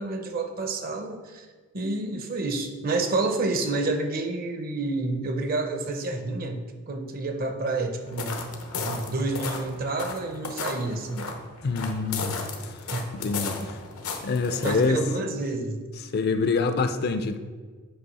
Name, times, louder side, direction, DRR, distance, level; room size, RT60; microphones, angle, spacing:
voice 1, 0.0-1.5 1.7-6.6 6.9-8.4 8.7-11.3 12.9-13.0 14.6-15.8, right 2 dB, 45° right, 6 dB, 0.6 m, -29 dB
sound 1, 8.0-15.1, left 4 dB, 85° left, 0.8 m, -35 dB
voice 2, 11.6-12.4 13.1-13.6 14.2-15.0 16.1-17.4, left 4 dB, 45° left, 8 dB, 0.4 m, -25 dB
8.0 x 3.1 x 5.4 m, 1.5 s
head